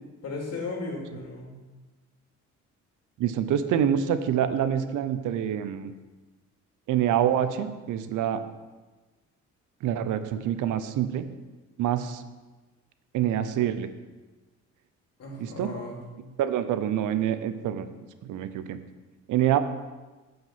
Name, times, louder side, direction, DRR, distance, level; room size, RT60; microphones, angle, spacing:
voice 1, 0.2-1.6 15.2-16.1, left 3 dB, 55° left, -1 dB, 2.6 m, -35 dB
voice 2, 3.2-5.9 6.9-8.4 9.8-11.2 11.8-12.2 13.1-13.9 15.4-15.7 16.4-17.9 18.2-18.8 19.3-19.6, right 10 dB, 85° right, 11 dB, 0.7 m, -26 dB
9.0 x 5.6 x 5.8 m, 1.2 s
cardioid pair, 90°, 30 cm